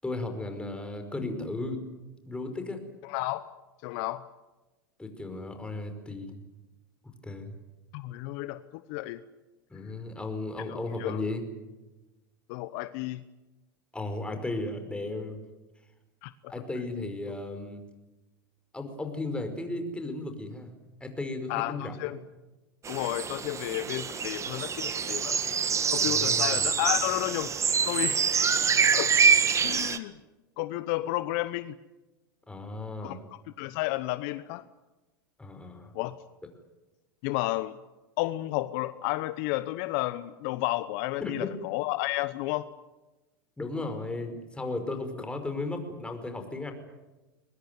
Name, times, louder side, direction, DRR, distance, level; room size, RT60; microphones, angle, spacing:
voice 1, 0.0-1.8 2.3-2.8 5.0-6.4 7.2-7.5 9.7-11.4 13.9-15.4 16.5-17.8 18.7-20.7 21.0-22.1 26.1-26.6 32.5-33.2 35.4-35.9 41.2-41.5 43.6-46.7, left 2 dB, 10° left, 6 dB, 5.2 m, -35 dB
voice 2, 3.0-3.5 3.8-4.2 7.9-9.2 10.7-11.2 12.5-13.2 16.2-16.5 21.5-22.2 22.9-25.4 25.9-27.5 27.8-28.2 28.9-29.1 29.6-30.1 30.6-31.8 33.0-33.2 33.6-34.6 35.9-36.1 37.2-37.8 38.2-42.7, left 18 dB, 60° left, 14 dB, 0.9 m, -32 dB
sound 1, 22.8-30.0, right 6 dB, 25° right, 1.7 m, -26 dB
22.5 x 21.0 x 9.5 m, 1.1 s
hypercardioid pair, 95°, 12 cm